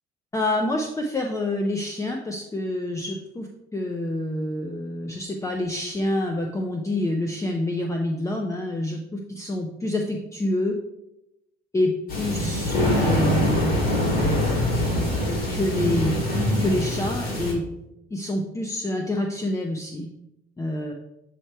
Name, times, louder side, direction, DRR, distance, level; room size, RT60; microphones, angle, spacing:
voice 1, 0.3-10.7 11.7-11.9 12.2-13.8 15.3-16.3 16.6-17.6 18.1-20.1 20.6-20.9, left 1 dB, 20° left, 2 dB, 0.6 m, -27 dB
sound 1, 12.1-17.5, left 1 dB, 55° left, 2.4 m, -23 dB
7.7 x 3.4 x 4.3 m, 0.87 s
cardioid pair, 110°, 17 cm